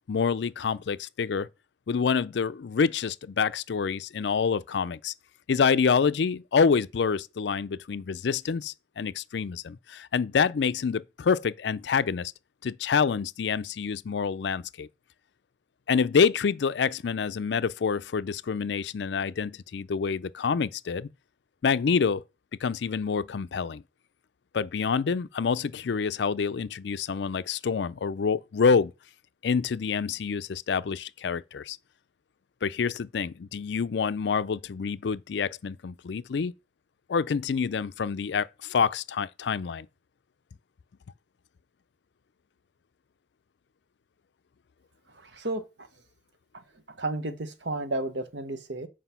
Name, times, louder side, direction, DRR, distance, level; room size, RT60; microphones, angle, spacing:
voice 1, 0.1-1.5 1.9-5.1 5.5-12.3 12.6-14.9 15.9-21.1 21.6-22.2 22.6-23.8 24.5-28.9 29.4-31.8 32.6-36.5 37.1-39.9, left 5 dB, 65° left, 0.4 m, -27 dB
voice 2, 45.1-45.9 46.5-48.9, right 2 dB, 70° right, 1.1 m, -33 dB
7.9 x 4.8 x 5.7 m
head